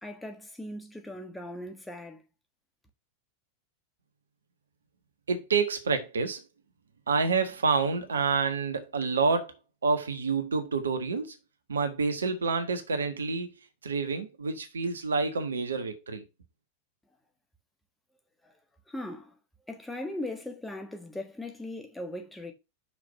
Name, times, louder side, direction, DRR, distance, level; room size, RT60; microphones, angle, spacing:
voice 1, 0.0-2.2 18.4-18.6 18.9-19.4 19.7-22.5, left 1 dB, 5° left, 1.5 m, -39 dB
voice 2, 5.3-6.4 7.1-9.5 9.8-11.3 11.7-13.5 13.8-16.2, right 4 dB, 70° right, 1.3 m, -28 dB
6.0 x 4.8 x 5.7 m
figure-of-eight pair, 90°, 0 cm